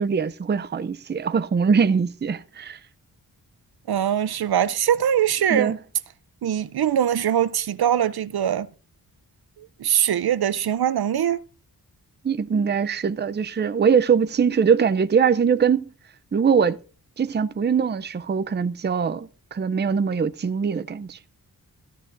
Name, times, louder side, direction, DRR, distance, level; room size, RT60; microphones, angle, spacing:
voice 1, 0.0-2.8 5.5-5.8 12.2-15.8 16.3-16.8 17.2-21.2, right 6 dB, 25° right, 0.5 m, -22 dB
voice 2, 3.9-5.8 6.4-8.7 9.6-11.4, right 10 dB, 70° right, 0.6 m, -22 dB
15.0 x 12.5 x 2.6 m
wide cardioid pair, 140°, 39 cm